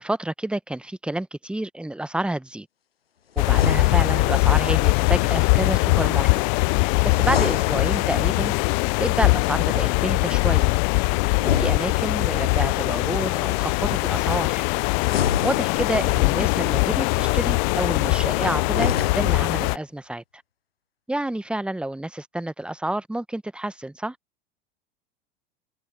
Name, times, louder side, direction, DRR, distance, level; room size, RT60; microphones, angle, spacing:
voice 1, 0.0-2.7 3.4-6.4 7.0-8.5 9.0-10.7 11.2-14.6 15.2-20.2 21.1-24.2, right 1 dB, 5° right, 1.2 m, -29 dB
sound 1, 3.4-4.4 7.1-8.4 11.3-12.5 15.0-16.2 18.6-19.6, left 8 dB, 90° left, 0.7 m, -27 dB
sound 2, 3.4-19.8, left 31 dB, 50° left, 0.7 m, -21 dB
hypercardioid pair, 85°, 29 cm